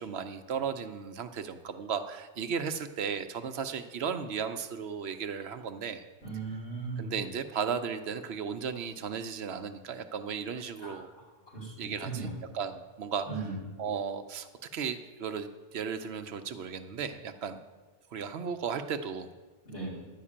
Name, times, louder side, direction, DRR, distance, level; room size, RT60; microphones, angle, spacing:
voice 1, 0.0-6.0 7.0-11.1 11.8-12.3 12.5-13.3 13.8-17.6 18.1-19.3, right 6 dB, 70° right, 9 dB, 0.9 m, -35 dB
voice 2, 6.2-7.1 10.8-11.0 11.5-12.3 13.3-13.5 19.6-20.0, right 4 dB, 75° left, -5 dB, 4.6 m, -37 dB
11.0 x 5.8 x 8.6 m, 1.3 s
omnidirectional pair, 1.2 m